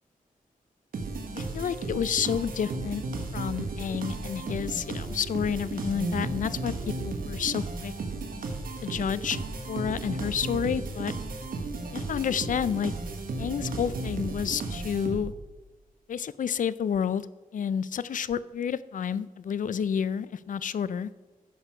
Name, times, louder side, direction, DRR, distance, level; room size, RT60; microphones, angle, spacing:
sound 1, 0.9-15.5, right 3 dB, 75° right, 1.4 m, -34 dB
voice 1, 1.3-3.0 3.3-6.7 7.0-7.9 8.8-9.4 9.7-11.1 11.9-12.9 13.4-15.3 16.1-17.3 17.5-21.1, left 8 dB, 65° left, 17 dB, 0.4 m, -30 dB
10.0 x 6.5 x 4.8 m, 1.2 s
cardioid pair, 75°, 15 cm